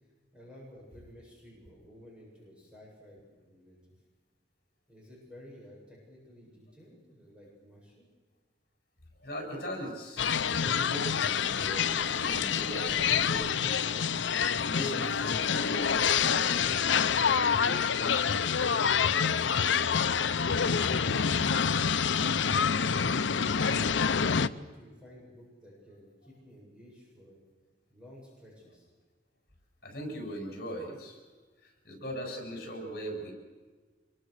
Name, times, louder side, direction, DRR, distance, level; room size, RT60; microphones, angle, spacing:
voice 1, 0.3-3.8 4.9-8.1 20.3-23.0 23.7-27.4 27.9-28.9, equal, 5° right, -4 dB, 7.8 m, -52 dB
voice 2, 9.2-10.2 10.5-13.7 14.6-16.9 17.2-18.5 29.8-31.2 31.6-33.3, equal, 55° left, 3 dB, 7.8 m, -40 dB
sound 1, 10.2-24.5, left 7 dB, 90° left, 0.7 m, -27 dB
26.0 x 23.0 x 6.7 m, 1.4 s
head